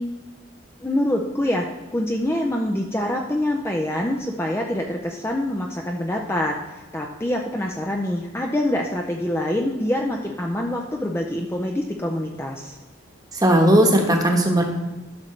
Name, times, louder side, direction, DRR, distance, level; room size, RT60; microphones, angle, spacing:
voice 1, 0.8-12.8, left 1 dB, 10° left, 1 dB, 0.5 m, -25 dB
voice 2, 13.3-14.6, right 1 dB, 20° right, 2 dB, 1.2 m, -17 dB
12.0 x 6.5 x 3.3 m, 1.2 s
head